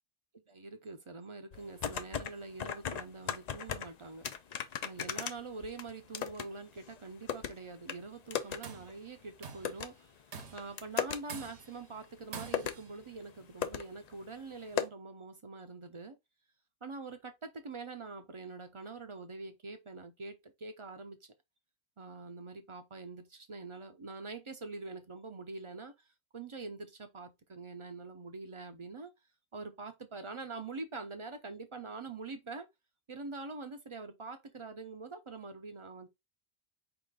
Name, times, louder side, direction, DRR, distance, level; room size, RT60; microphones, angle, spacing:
voice 1, 0.5-4.3 4.8-9.9 10.5-16.2 16.8-21.3 22.0-26.1 26.3-29.1 29.5-32.7 33.1-36.1, right 3 dB, 35° right, 0.5 m, -44 dB
sound 1, 1.5-2.3 2.6-3.9 4.2-6.5 6.8-7.5 7.9-8.0 8.3-8.6 8.9-9.0 9.6-9.9 10.4-11.2 12.0-12.1 12.5-12.8 13.3-13.4 13.6-13.8 14.1-14.2 14.8-14.9, left 8 dB, 55° left, 0.5 m, -35 dB
Tools, 8.4-8.9 9.4-9.8 10.3-10.8 11.3-11.8 12.3-12.9, right 6 dB, 85° right, 1.1 m, -46 dB
4.9 x 2.4 x 3.6 m
omnidirectional pair, 1.1 m